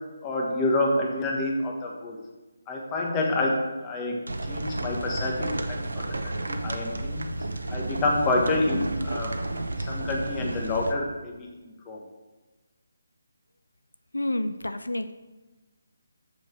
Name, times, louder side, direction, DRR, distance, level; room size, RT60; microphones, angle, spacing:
voice 1, 0.2-2.2 2.7-4.2 4.4-7.3 7.7-9.3 9.7-11.5 11.9-12.0, left 2 dB, 20° left, -1 dB, 1.4 m, -28 dB
sound 1, 4.3-10.9, right 2 dB, 80° right, 0.8 m, -32 dB
voice 2, 14.1-15.1, left 1 dB, 90° left, 10 dB, 0.4 m, -29 dB
6.8 x 6.3 x 4.6 m, 1.2 s
figure-of-eight pair, 150°, 0 cm